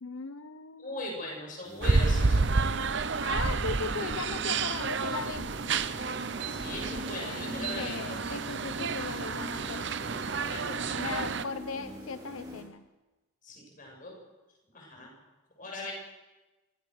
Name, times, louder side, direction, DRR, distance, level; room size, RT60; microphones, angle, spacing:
voice 1, 0.0-0.9 3.2-5.5 7.1-10.0 11.0-12.8, left 5 dB, 80° left, 10 dB, 0.8 m, -38 dB
voice 2, 0.8-2.5 6.5-8.2 10.5-11.2 13.4-14.1 14.7-15.1 15.6-15.9, left 2 dB, 40° left, 0 dB, 7.5 m, -39 dB
sound 1, 1.6-12.6, equal, 20° right, 3.8 m, -44 dB
sound 2, 1.8-11.4, right 4 dB, 55° right, 0.8 m, -30 dB
26.0 x 16.5 x 6.6 m, 1.1 s
head